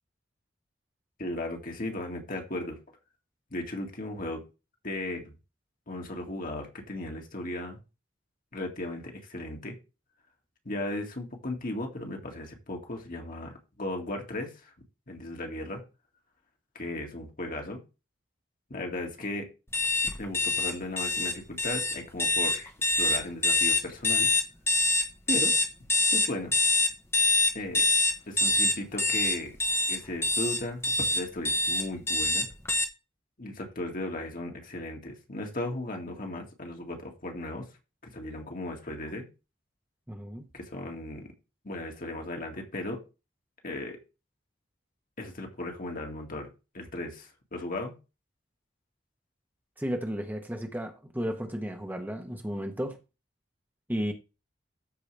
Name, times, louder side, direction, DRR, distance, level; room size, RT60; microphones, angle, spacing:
voice 1, 1.2-2.8 3.5-4.5 4.8-5.3 5.9-7.8 8.5-9.8 10.7-14.7 15.1-15.8 16.8-17.8 18.7-19.5 20.2-22.7 23.0-24.3 25.3-25.5 26.1-26.5 27.5-27.9 28.3-29.6 29.9-32.5 33.4-37.6 38.0-39.3 40.5-41.3 41.6-43.0 43.6-44.0 45.2-46.5 46.7-47.9, left 1 dB, 45° left, 2.0 m, -36 dB
sound 1, 19.7-32.8, left 2 dB, 15° left, 1.0 m, -25 dB
voice 2, 40.1-40.5 49.8-53.0 53.9-54.1, equal, 10° right, 1.1 m, -33 dB
13.5 x 4.9 x 3.3 m
head